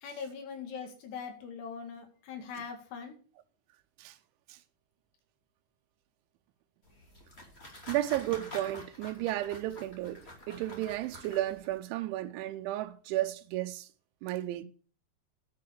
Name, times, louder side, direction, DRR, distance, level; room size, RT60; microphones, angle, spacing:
voice 1, 0.0-3.2, left 6 dB, 70° left, 4.0 m, -41 dB
sound 1, 6.8-11.8, left 1 dB, 20° left, 1.8 m, -48 dB
voice 2, 7.9-13.9 14.2-14.6, right 15 dB, 90° right, 3.1 m, -33 dB
10.5 x 6.6 x 6.5 m
omnidirectional pair, 5.3 m